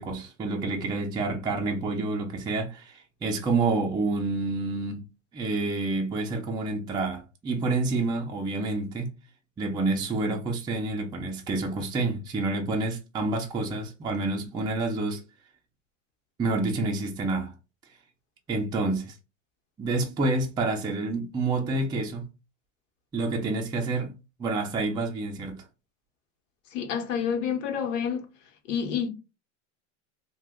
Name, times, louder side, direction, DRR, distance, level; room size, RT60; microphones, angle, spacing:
voice 1, 0.0-5.1 5.3-9.1 9.6-15.2 16.4-17.5 18.5-19.1 19.8-22.3 23.1-24.1 24.4-25.6, right 3 dB, 10° right, 0.4 m, -28 dB
voice 2, 26.7-28.2 28.7-29.1, left 7 dB, 80° left, 0.9 m, -28 dB
2.7 x 2.1 x 3.5 m
supercardioid pair, 120°, 37 cm